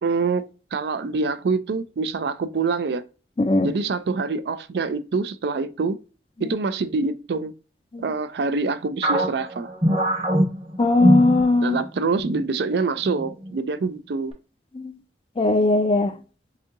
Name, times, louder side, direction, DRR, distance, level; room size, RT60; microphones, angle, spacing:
voice 1, 0.0-3.0 3.6-6.0 6.4-7.5 8.0-9.7 11.6-14.3, right 4 dB, 70° right, 0.4 m, -25 dB
voice 2, 3.4-3.7 7.9-8.1 10.8-11.8 14.8-14.9 15.4-16.1, left 2 dB, 30° left, 0.4 m, -19 dB
sound 1, 9.0-11.9 12.2-12.4 13.0-13.5, equal, 30° right, 1.0 m, -22 dB
4.9 x 2.7 x 2.5 m
head